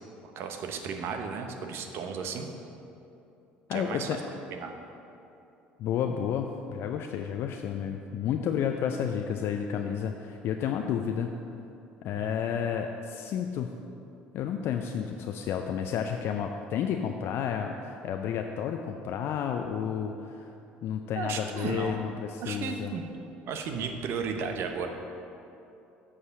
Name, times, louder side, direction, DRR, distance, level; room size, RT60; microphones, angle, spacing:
voice 1, 0.4-2.5 3.7-4.2 4.5-4.7 12.2-12.3 21.2-22.1 22.4-23.0 23.5-24.9, right 5 dB, 60° right, 5 dB, 0.9 m, -34 dB
voice 2, 3.7-4.2 5.8-11.3 12.0-13.7 14.3-20.5 20.8-22.9, left 8 dB, 60° left, 4 dB, 0.5 m, -31 dB
8.1 x 4.9 x 7.2 m, 2.8 s
hypercardioid pair, 65°, 5 cm